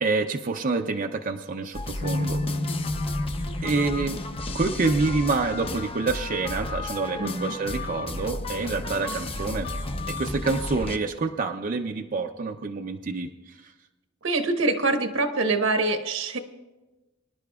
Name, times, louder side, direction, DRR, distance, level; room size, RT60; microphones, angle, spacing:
voice 1, 0.0-2.4 3.6-4.2 4.5-9.7 10.1-13.3 13.6-13.7, right 3 dB, 45° right, 4 dB, 0.5 m, -27 dB
sound 1, 1.7-11.0, left 2 dB, 30° left, 0.6 m, -33 dB
sound 2, 2.0-8.3, left 1 dB, 75° left, 1.6 m, -35 dB
voice 2, 7.2-7.5 14.2-16.4, right 3 dB, 80° right, 5 dB, 1.3 m, -25 dB
24.0 x 11.0 x 2.4 m, 1.1 s
head